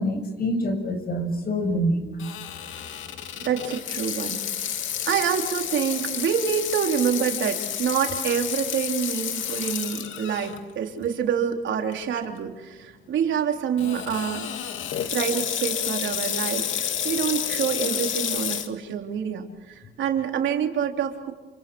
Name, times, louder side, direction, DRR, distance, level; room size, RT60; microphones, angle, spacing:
voice 1, 0.0-2.1, equal, 50° left, 6 dB, 7.4 m, -26 dB
Water tap faucet / Sink (filling or washing), 2.2-10.6 11.1-11.2 11.9-12.2 13.8-18.7, left 9 dB, 75° left, 2.5 m, -30 dB
voice 2, 3.4-4.4 5.1-14.5 15.1-21.3, right 8 dB, 70° right, 3 dB, 3.7 m, -27 dB
28.5 x 28.0 x 6.3 m, 1.1 s
cardioid pair, 90°, 20 cm